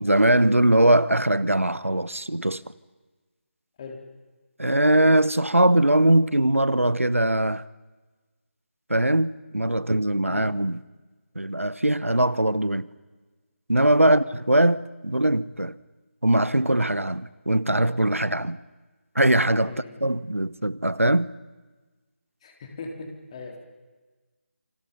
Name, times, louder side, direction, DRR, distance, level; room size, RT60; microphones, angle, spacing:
voice 1, 0.0-2.6 4.6-7.6 8.9-10.8 11.3-12.9 13.7-15.8 16.2-18.6 19.1-19.7 20.0-21.3, right 1 dB, 90° right, 1.1 m, -21 dB
voice 2, 19.7-20.0 22.4-23.6, left 4 dB, 25° left, 3.7 m, -39 dB
28.0 x 27.0 x 5.4 m
figure-of-eight pair, 160°, 7 cm